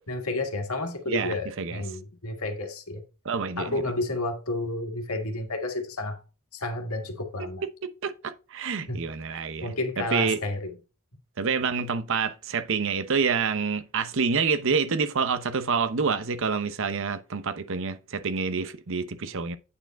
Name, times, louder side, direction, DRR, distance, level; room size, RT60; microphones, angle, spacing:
voice 1, 0.0-3.0 3.6-6.2 6.5-7.6 8.9-9.0 9.3-10.7, left 2 dB, 85° left, 1.7 m, -31 dB
voice 2, 1.1-1.8 3.2-3.8 7.8-10.4 11.4-19.6, right 5 dB, 65° right, 0.8 m, -27 dB
8.6 x 4.7 x 4.5 m
head